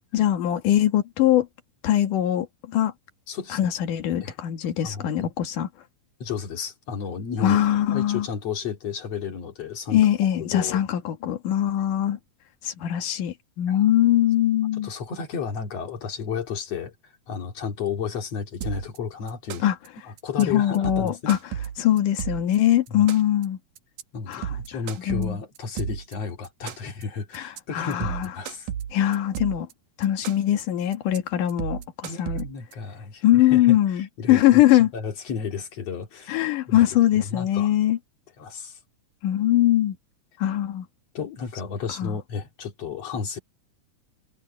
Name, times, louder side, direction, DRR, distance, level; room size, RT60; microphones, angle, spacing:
voice 1, 0.1-1.5 1.8-2.9 3.5-5.7 7.4-8.3 9.9-12.2 12.6-14.9 19.6-19.8 20.4-21.4 21.8-23.6 24.3-24.5 25.1-25.4 27.3-28.3 28.9-29.7 30.0-32.4 33.2-34.9 36.3-38.0 39.2-40.0 40.4-40.9 42.0-42.2, left 12 dB, 90° left, 3.1 m, -22 dB
voice 2, 3.3-3.6 4.2-4.4 4.8-5.3 6.2-7.6 7.9-10.1 10.4-10.8 13.7-13.8 14.8-16.9 17.3-19.6 20.0-21.3 22.9-23.0 24.1-28.7 32.0-34.6 34.9-36.9 37.1-37.7 38.4-38.8 41.1-43.4, left 6 dB, 55° left, 3.3 m, -33 dB
sound 1, 18.6-19.0 19.3-19.9 20.2-20.4 20.7-22.6 22.9-23.4 23.8-24.0 24.3-26.1 26.4-27.0 27.3-27.6 27.9-29.7 30.0-30.6 30.9-31.2 31.5-32.7, right 9 dB, 80° right, 2.8 m, -33 dB
omnidirectional pair, 3.6 m